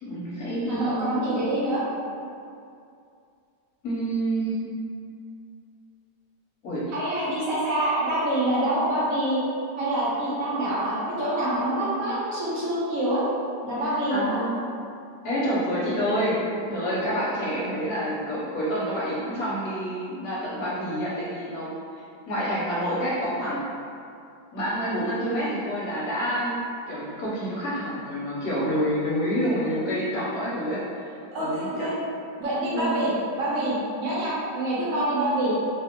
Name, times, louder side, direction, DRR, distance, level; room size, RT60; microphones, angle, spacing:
voice 1, 0.0-1.0 3.8-4.6 6.6-6.8 14.1-14.6 15.2-16.4 16.7-23.7 24.5-26.6 26.9-31.9 32.7-33.0, equal, 65° left, -7 dB, 1.1 m, -28 dB
voice 2, 0.7-1.8 6.9-9.4 9.8-13.2 13.6-14.4 31.3-31.9 32.4-33.1 33.4-35.5, right 1 dB, 60° right, -8 dB, 1.0 m, -26 dB
3.1 x 2.5 x 2.8 m, 2.4 s
omnidirectional pair, 1.9 m